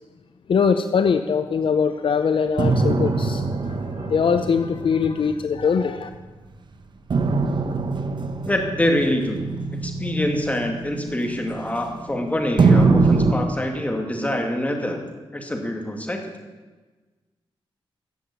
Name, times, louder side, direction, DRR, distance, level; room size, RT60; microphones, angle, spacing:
voice 1, 0.5-3.5 4.0-6.1, left 6 dB, 65° left, 9 dB, 0.7 m, -21 dB
sound 1, 2.6-6.3 7.1-12.1 12.6-13.3, right 4 dB, 55° right, 1.2 m, -23 dB
voice 2, 8.5-9.4 9.8-15.0 15.3-16.2, left 1 dB, 15° left, 3 dB, 2.5 m, -25 dB
14.5 x 7.6 x 8.6 m, 1.3 s
wide cardioid pair, 95°, 10 cm